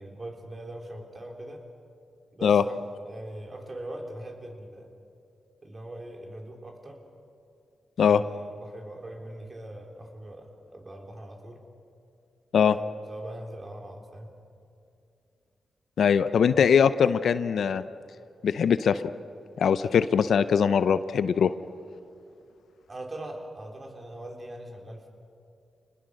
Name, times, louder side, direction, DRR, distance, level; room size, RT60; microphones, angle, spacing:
voice 1, 0.0-1.6 2.3-4.9 5.6-7.0 8.0-11.6 12.7-14.3 16.5-16.7 22.9-25.1, right 1 dB, 40° right, 2 dB, 4.0 m, -41 dB
voice 2, 16.0-17.8 18.4-19.0 19.6-21.5, left 7 dB, 75° left, 13 dB, 0.6 m, -21 dB
26.5 x 20.5 x 6.4 m, 2.5 s
supercardioid pair, 50°, 0 cm